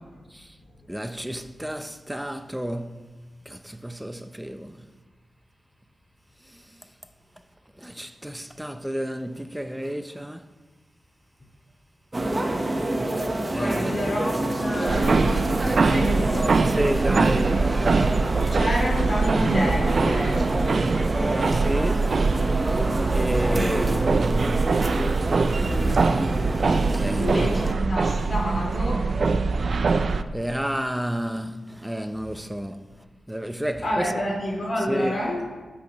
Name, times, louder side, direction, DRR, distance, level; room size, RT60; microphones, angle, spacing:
voice 1, 0.9-3.0 3.5-4.8 7.8-10.4 13.5-14.0 16.6-17.7 21.3-22.1 23.1-23.9 26.9-27.5 30.3-32.9 33.3-34.2 34.9-35.2, equal, 5° right, 0.7 m, -30 dB
sound 1, 12.1-27.7, right 1 dB, 25° right, 1.2 m, -27 dB
voice 2, 13.6-15.5 15.8-16.6 18.5-20.9 23.4-23.8 25.5-26.2 27.2-29.1 29.9-30.0 33.7-35.4, equal, 40° left, 4.7 m, -29 dB
sound 2, 14.9-30.2, right 4 dB, 55° right, 0.5 m, -23 dB
20.5 x 8.8 x 3.2 m
wide cardioid pair, 100°, 0 cm